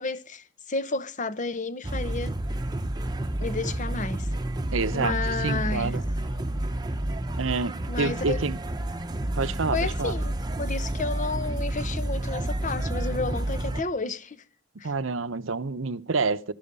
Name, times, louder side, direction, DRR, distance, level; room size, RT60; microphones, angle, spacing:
voice 1, 0.0-2.3 3.4-4.3 4.9-6.0 7.9-8.4 9.7-14.4 14.8-14.9, left 3 dB, 40° left, 1.0 m, -31 dB
sound 1, 1.8-13.8, right 1 dB, 20° right, 1.0 m, -30 dB
voice 2, 4.7-6.0 7.4-8.6 9.4-10.1 14.8-16.5, right 4 dB, 80° right, 0.9 m, -28 dB
20.0 x 13.0 x 5.4 m
head